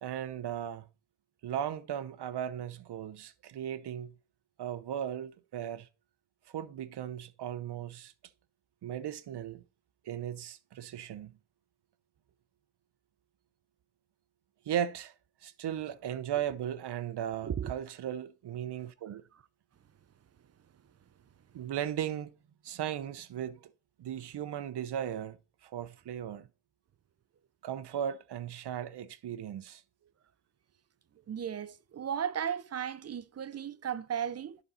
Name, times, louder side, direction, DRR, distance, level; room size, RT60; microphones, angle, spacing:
voice 1, 0.0-0.9 1.4-4.1 4.6-5.9 6.5-8.1 8.8-9.6 10.0-11.3 14.7-15.1 15.4-19.2 21.5-22.3 22.6-23.6 24.0-25.4 25.6-26.5 27.6-29.8, right 10 dB, 55° right, 0.9 m, -36 dB
voice 2, 31.3-34.6, right 8 dB, 35° right, 0.5 m, -35 dB
10.5 x 4.1 x 4.3 m
cardioid pair, 105°, 49 cm